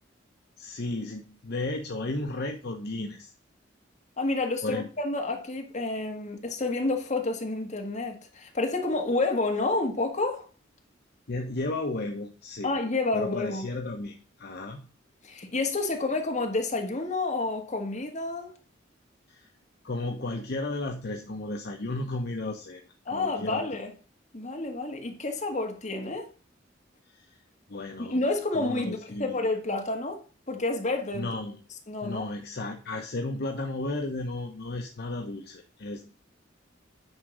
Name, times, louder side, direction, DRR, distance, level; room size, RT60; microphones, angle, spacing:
voice 1, 0.6-3.3 4.6-4.9 11.3-12.7 13.1-14.9 19.3-19.5 19.8-23.8 27.1-27.4 27.7-28.2 28.5-29.4 31.1-31.6 32.0-36.1, left 2 dB, 55° left, 0.9 m, -34 dB
voice 2, 4.2-10.5 12.6-13.7 15.2-18.5 23.0-23.9 24.3-26.3 28.0-31.3 31.9-32.3, left 2 dB, 40° left, 1.7 m, -29 dB
9.6 x 3.7 x 6.2 m
head